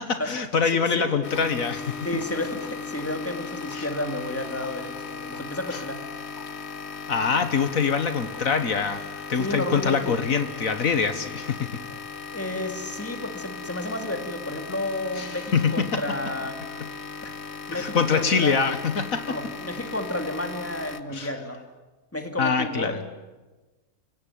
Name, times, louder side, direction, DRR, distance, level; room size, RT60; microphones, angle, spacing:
voice 1, 0.0-2.0 3.7-3.9 5.7-5.8 7.1-11.7 15.2-15.9 17.7-19.4 21.1-21.3 22.4-23.0, left 5 dB, 70° left, 9 dB, 1.8 m, -24 dB
voice 2, 0.7-1.1 2.0-6.0 9.3-10.2 11.9-16.6 17.2-17.3 17.7-18.6 19.3-21.6 22.1-23.0, left 1 dB, 10° left, 5 dB, 2.6 m, -32 dB
sound 1, 1.2-21.0, left 5 dB, 50° left, 1.4 m, -37 dB
30.0 x 17.0 x 9.4 m, 1.2 s
omnidirectional pair, 1.5 m